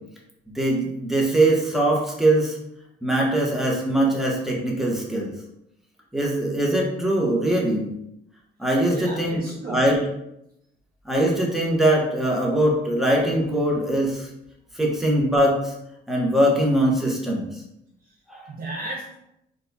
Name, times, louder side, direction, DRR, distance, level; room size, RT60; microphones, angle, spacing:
voice 1, 0.5-2.6 3.0-5.3 6.1-7.9 8.6-10.0 11.0-14.3 14.7-15.7 16.1-17.6 18.3-18.4, right 1 dB, ahead, -2 dB, 0.9 m, -22 dB
voice 2, 8.9-9.9 18.0-18.1 18.5-19.1, right 2 dB, 45° right, -1 dB, 0.6 m, -34 dB
4.2 x 2.3 x 2.7 m, 0.82 s
cardioid pair, 90°, 20 cm